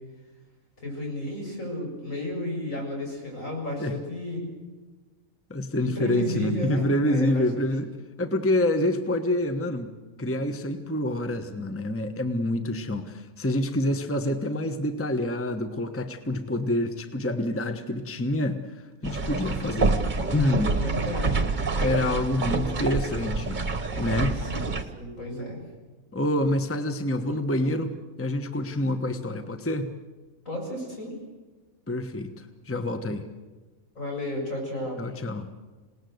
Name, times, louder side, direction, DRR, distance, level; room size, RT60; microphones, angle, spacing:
voice 1, 0.8-4.4 5.8-7.4 20.6-21.5 24.3-24.6 24.9-25.6 30.5-31.1 34.0-35.1, left 1 dB, 70° left, 0 dB, 7.6 m, -33 dB
voice 2, 5.5-7.9 8.2-9.9 10.2-20.0 20.3-20.8 21.8-23.6 24.0-24.4 26.1-29.9 31.9-33.3 35.0-35.5, left 1 dB, 10° left, 8 dB, 1.2 m, -27 dB
sound 1, 19.0-24.8, right 3 dB, 35° right, 1.5 m, -27 dB
27.5 x 19.0 x 8.0 m, 1.3 s
omnidirectional pair, 1.5 m